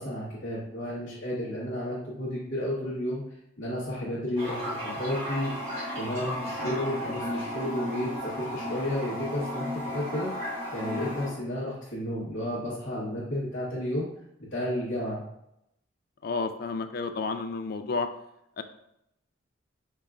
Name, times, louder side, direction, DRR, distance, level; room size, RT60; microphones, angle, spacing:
voice 1, 0.0-3.2 3.6-10.3 10.7-14.1 14.5-15.2, left 1 dB, 65° left, -10 dB, 1.4 m, -32 dB
Toilet flush, 4.4-11.3, left 1 dB, 30° right, 1.7 m, -34 dB
voice 2, 16.2-18.1 18.6-18.7, left 4 dB, 45° left, 9 dB, 0.3 m, -31 dB
5.5 x 3.5 x 2.5 m, 0.80 s
head